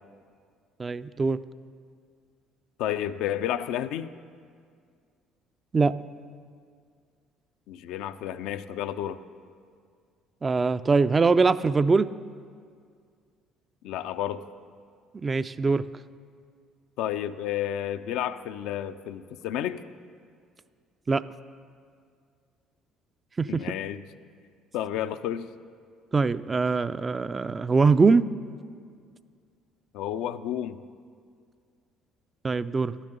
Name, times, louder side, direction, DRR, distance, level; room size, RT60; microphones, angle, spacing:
voice 1, 0.8-1.4 5.7-5.9 10.4-12.1 15.2-15.8 21.1-21.2 23.4-23.6 26.1-28.3 32.4-32.9, right 4 dB, 30° right, 14 dB, 0.3 m, -22 dB
voice 2, 2.8-4.1 7.7-9.2 13.8-14.4 17.0-19.8 23.5-24.1 24.7-25.5 29.9-30.8, left 11 dB, 70° left, 11 dB, 0.3 m, -31 dB
11.5 x 7.2 x 6.6 m, 2.1 s
hypercardioid pair, 60°, 0 cm